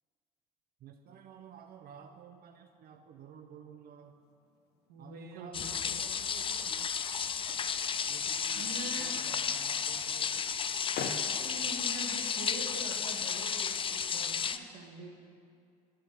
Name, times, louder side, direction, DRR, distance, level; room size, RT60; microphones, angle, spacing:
voice 1, 0.8-4.2 5.0-6.9 8.1-10.5, right 7 dB, 50° right, 6 dB, 0.6 m, -52 dB
sound 1, 4.0-14.4, left 5 dB, 55° left, 0.8 m, -49 dB
voice 2, 4.9-5.9 8.5-9.2 11.4-15.1, right 3 dB, 80° right, 1 dB, 1.1 m, -44 dB
sound 2, 5.5-14.6, left 7 dB, 25° left, 0.4 m, -33 dB
7.8 x 5.7 x 5.3 m, 2.3 s
hypercardioid pair, 55°, 20 cm